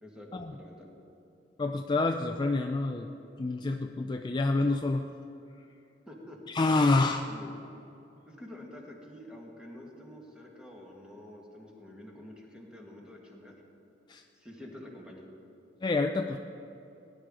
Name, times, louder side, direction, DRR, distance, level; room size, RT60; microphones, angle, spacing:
voice 1, 0.0-0.9 6.1-6.4 7.3-7.5 8.3-13.5 14.4-15.3, left 1 dB, 5° right, -2 dB, 1.8 m, -48 dB
voice 2, 1.6-3.1 3.4-5.1 6.5-7.2 14.1-14.2 15.8-16.4, left 3 dB, 25° left, 5 dB, 0.4 m, -27 dB
17.5 x 10.5 x 3.8 m, 2.8 s
head